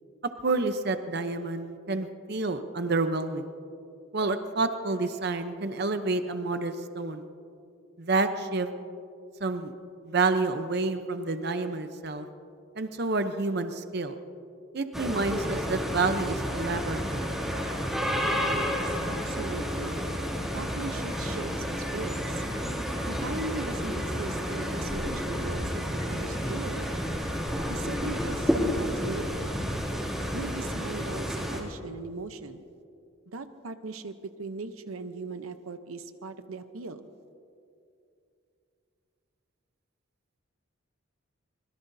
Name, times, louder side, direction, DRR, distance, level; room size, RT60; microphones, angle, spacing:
voice 1, 0.4-3.5 4.1-7.3 8.0-8.7 9.4-9.7 10.0-12.3 12.8-14.2 14.7-17.2, right 3 dB, 50° right, 8 dB, 0.7 m, -29 dB
sound 1, 14.9-31.6, equal, ahead, 2.6 m, -30 dB
voice 2, 18.4-20.0 20.5-22.4 23.1-27.0 27.7-29.5 30.3-32.6 33.3-34.1 34.4-37.1, right 3 dB, 85° right, 9 dB, 0.8 m, -39 dB
24.5 x 21.5 x 2.7 m, 2.6 s
head